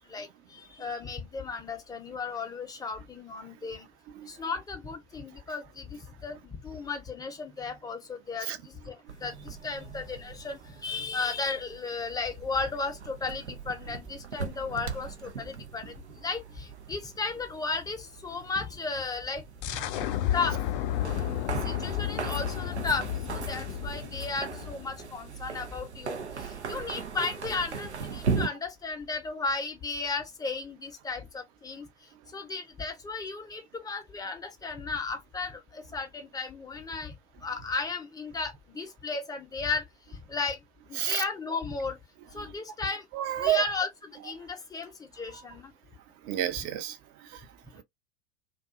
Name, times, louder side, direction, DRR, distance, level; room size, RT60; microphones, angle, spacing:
voice 1, 0.0-3.9 4.3-19.8 20.3-20.6 21.5-31.9 32.3-37.1 37.4-39.8 40.3-40.6 40.9-42.0 42.3-43.0 43.4-45.7, left 4 dB, 10° left, 0.6 m, -35 dB
sound 1, 9.1-28.5, right 5 dB, 90° right, 0.6 m, -39 dB
sound 2, 19.6-25.1, left 12 dB, 50° left, 0.5 m, -32 dB
voice 2, 43.1-43.6 45.3-45.4 46.2-47.0 47.2-47.4, right 12 dB, 50° right, 0.7 m, -30 dB
2.5 x 2.3 x 2.4 m
figure-of-eight pair, 85°, 33 cm